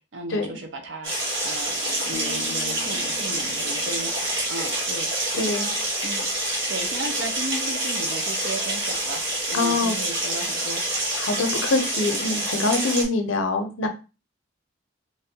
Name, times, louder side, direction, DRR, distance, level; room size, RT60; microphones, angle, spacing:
voice 1, 0.1-1.1 1.4-4.1 4.5-5.1 5.5-5.8 6.0-6.3 6.7-9.2 9.5-10.8, right 2 dB, 65° right, 5 dB, 0.6 m, -35 dB
sound 1, 1.0-13.1, right 1 dB, 90° right, 1.0 m, -27 dB
Bass guitar, 2.1-5.7, left 6 dB, 40° left, 0.3 m, -43 dB
voice 2, 5.3-5.7 9.5-10.0 11.2-13.9, left 3 dB, 80° left, 5 dB, 0.6 m, -24 dB
2.9 x 2.1 x 2.7 m, 0.30 s
head